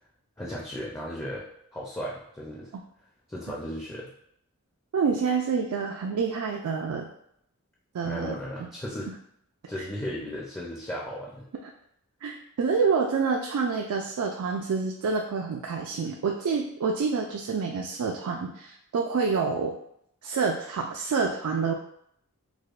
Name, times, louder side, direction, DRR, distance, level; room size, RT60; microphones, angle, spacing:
voice 1, 0.4-2.7 3.3-4.1 8.0-9.1 9.7-11.5, equal, 10° left, -4 dB, 0.4 m, -36 dB
voice 2, 4.9-7.1 7.9-8.7 9.8-9.9 12.2-19.7 20.2-21.7, right 5 dB, 80° right, 1 dB, 0.3 m, -27 dB
4.8 x 2.1 x 2.3 m, 0.73 s
head